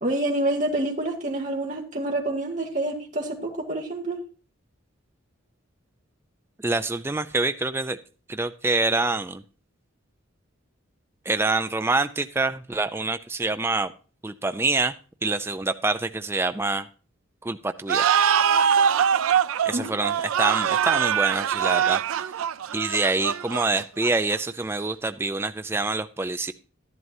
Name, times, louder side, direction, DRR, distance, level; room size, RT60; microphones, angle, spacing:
voice 1, 0.0-4.2 19.7-19.9, right 1 dB, 35° right, 0 dB, 1.9 m, -27 dB
voice 2, 6.6-8.0 8.3-9.4 11.3-13.9 14.2-14.9 15.2-16.9 17.4-18.1 19.7-22.0 22.7-26.5, right 3 dB, 10° right, 9 dB, 0.4 m, -26 dB
sound 1, 17.9-24.3, right 8 dB, 80° right, 0.4 m, -23 dB
12.0 x 11.0 x 2.7 m, 0.37 s
head